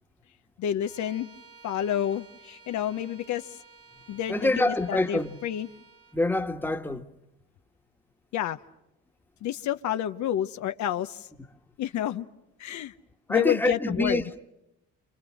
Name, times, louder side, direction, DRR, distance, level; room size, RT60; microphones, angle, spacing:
voice 1, 0.6-1.3 1.6-3.5 4.1-5.7 8.3-8.6 9.4-11.3 11.8-12.3 12.6-12.9 13.3-14.2, left 11 dB, 70° left, 0.9 m, -29 dB
Bowed string instrument, 0.8-6.2, right 4 dB, 50° right, 1.8 m, -53 dB
voice 2, 4.3-5.4 6.1-7.0 13.3-14.4, left 2 dB, 5° left, 1.5 m, -26 dB
29.5 x 27.0 x 6.4 m
cardioid pair, 80°, 29 cm